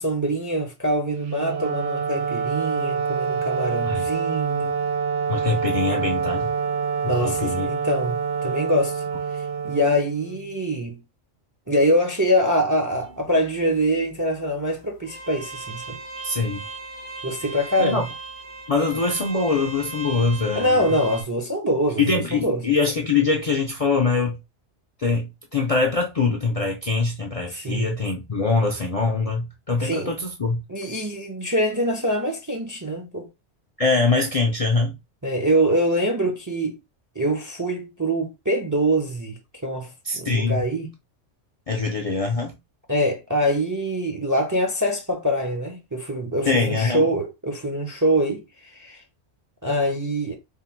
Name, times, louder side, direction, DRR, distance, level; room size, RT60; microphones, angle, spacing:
voice 1, 0.0-4.7 7.0-9.0 9.3-11.0 11.7-16.0 17.2-18.1 20.5-22.6 27.5-28.0 29.8-30.1 30.7-33.3 35.2-36.8 37.2-40.9 42.9-49.0 49.6-50.4, equal, 25° right, 0.5 m, -24 dB
Wind instrument woodwind instrument, 1.2-10.5, right 6 dB, 85° right, 1.0 m, -26 dB
voice 2, 5.3-6.5 7.0-7.7 16.2-16.6 17.8-18.0 18.7-20.9 22.0-24.4 25.0-30.6 33.8-34.9 40.0-40.7 41.7-42.5 46.5-47.0, left 4 dB, 45° left, 0.4 m, -23 dB
sound 1, 12.9-21.2, right 3 dB, 65° right, 1.6 m, -38 dB
3.6 x 2.1 x 4.3 m
omnidirectional pair, 1.2 m